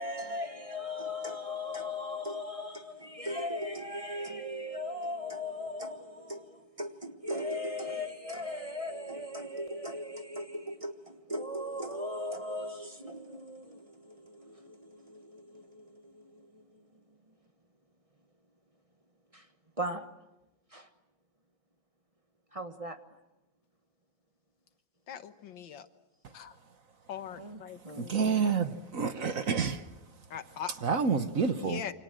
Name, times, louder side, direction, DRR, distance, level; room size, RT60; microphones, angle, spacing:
voice 1, 0.0-17.2 19.3-19.5 19.8-20.1 20.7-20.9 22.5-23.2 27.4-28.1, left 1 dB, 20° right, 1.3 m, -38 dB
voice 2, 25.1-25.9 26.3-26.6 27.1-28.5 30.3-30.7 31.6-31.9, left 9 dB, 85° left, 2.0 m, -41 dB
voice 3, 28.0-29.8 30.8-31.8, right 5 dB, 50° right, 1.4 m, -28 dB
28.5 x 25.5 x 7.7 m
omnidirectional pair, 2.0 m